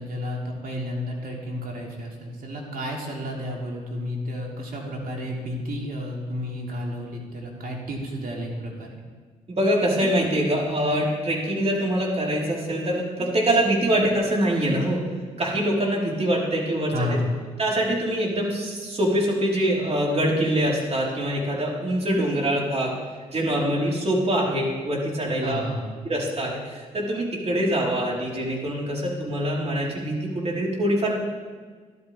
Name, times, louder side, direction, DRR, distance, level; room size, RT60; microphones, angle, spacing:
voice 1, 0.0-9.0 16.9-17.3 25.4-25.9, left 1 dB, 60° right, -1 dB, 3.2 m, -31 dB
voice 2, 9.5-15.0 15.3-17.2 17.6-23.0 23.3-25.6 26.0-31.1, right 1 dB, 40° right, -4 dB, 4.2 m, -24 dB
13.5 x 12.0 x 3.5 m, 1.5 s
hypercardioid pair, 50°, 17 cm